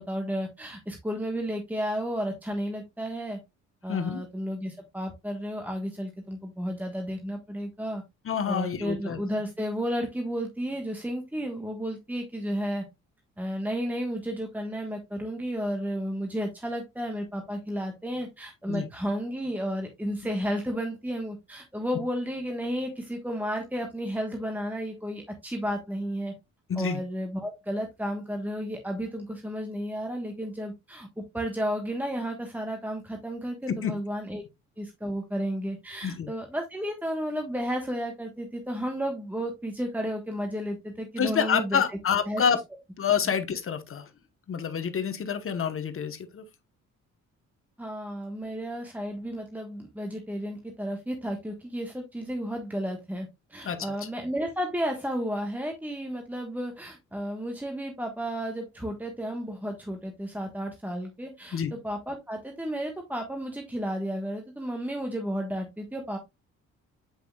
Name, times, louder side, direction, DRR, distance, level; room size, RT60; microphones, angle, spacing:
voice 1, 0.0-3.4 3.8-8.0 8.5-12.9 13.4-26.3 26.7-34.4 34.8-42.0 42.3-42.4 47.8-66.2, equal, 5° right, 1.3 m, -32 dB
voice 2, 3.9-4.2 8.2-9.2 18.7-18.9 26.7-27.0 33.8-33.9 36.0-36.3 41.2-42.6 43.0-44.1 44.5-46.4 53.6-53.9 61.5-61.7, left 7 dB, 45° left, 1.1 m, -27 dB
8.2 x 5.0 x 2.3 m
cardioid pair, 90°, 30 cm